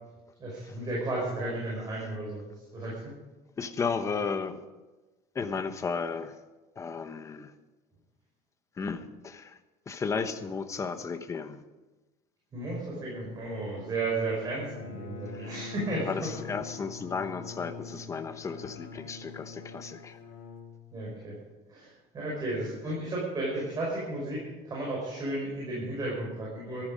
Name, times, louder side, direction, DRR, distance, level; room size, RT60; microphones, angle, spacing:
voice 1, 0.4-3.1 12.5-16.4 20.9-21.4 21.7-26.8, right 2 dB, 30° right, -4 dB, 5.3 m, -34 dB
voice 2, 3.6-4.6 5.3-6.3 6.8-7.5 8.8-9.6 9.9-11.6 15.3-15.5 16.1-20.2, left 5 dB, 25° left, 9 dB, 1.1 m, -34 dB
Bowed string instrument, 13.0-21.4, left 5 dB, 65° left, 2.9 m, -44 dB
14.5 x 13.5 x 5.2 m, 1.2 s
cardioid pair, 140°, 13 cm